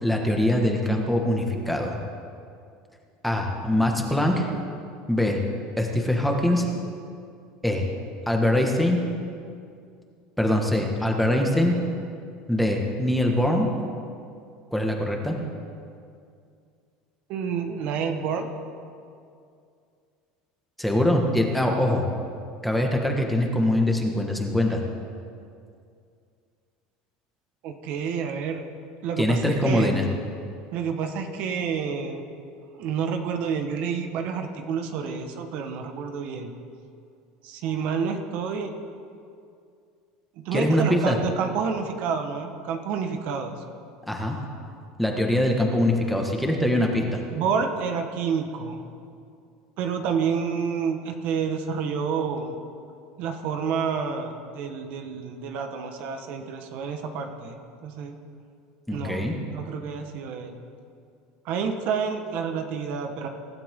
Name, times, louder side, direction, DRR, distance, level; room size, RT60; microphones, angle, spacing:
voice 1, 0.0-2.0 3.2-4.5 5.1-5.4 5.8-6.7 7.6-7.9 8.3-9.0 10.4-11.7 12.5-13.7 14.7-15.3 20.8-22.0 22.6-24.8 29.2-30.1 40.5-41.2 44.1-44.4 45.0-47.2 58.9-59.3, left 1 dB, ahead, 1 dB, 1.7 m, -23 dB
voice 2, 17.3-18.5 27.6-28.6 29.0-30.0 30.7-32.2 32.8-36.5 37.4-38.7 40.4-43.6 47.3-48.8 49.8-52.6 53.2-58.2 58.9-60.6 61.4-63.3, right 6 dB, 55° right, 5 dB, 1.5 m, -29 dB
24.5 x 12.5 x 3.8 m, 2.4 s
supercardioid pair, 140°, 3 cm